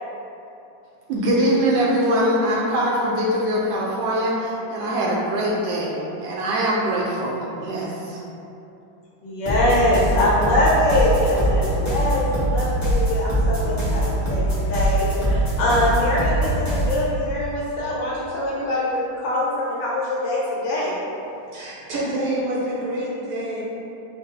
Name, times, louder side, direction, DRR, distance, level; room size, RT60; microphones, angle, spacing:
voice 1, 1.1-8.2, right 1 dB, 70° right, -4 dB, 1.2 m, -22 dB
voice 2, 9.2-21.0, left 1 dB, 70° left, -6 dB, 1.2 m, -23 dB
sound 1, 9.4-17.1, right 1 dB, 20° left, 0.5 m, -22 dB
voice 3, 21.5-23.6, right 1 dB, 90° right, -7 dB, 2.0 m, -27 dB
5.5 x 2.1 x 3.7 m, 2.8 s
omnidirectional pair, 2.4 m